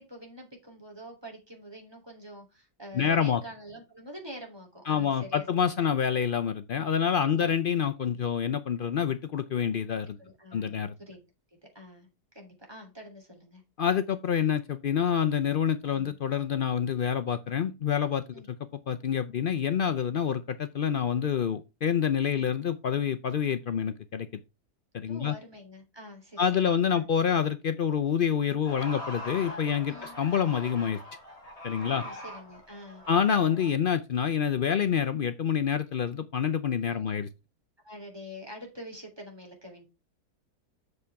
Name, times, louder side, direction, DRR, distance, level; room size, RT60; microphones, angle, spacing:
voice 1, 0.0-5.8 7.2-7.6 10.2-11.2 11.6-12.1 12.3-13.6 18.3-18.5 22.3-22.5 25.1-27.1 29.9-30.2 31.8-33.0 36.8-37.2 37.8-39.9, equal, 15° right, 3.2 m, -46 dB
voice 2, 2.9-3.4 4.9-10.2 10.5-10.9 13.8-18.6 18.9-24.3 24.9-25.3 26.4-31.0 31.6-32.0 33.1-37.3, left 8 dB, 75° left, 0.4 m, -27 dB
sound 1, 28.6-33.7, left 1 dB, 20° left, 4.1 m, -42 dB
8.1 x 6.9 x 3.5 m
omnidirectional pair, 1.7 m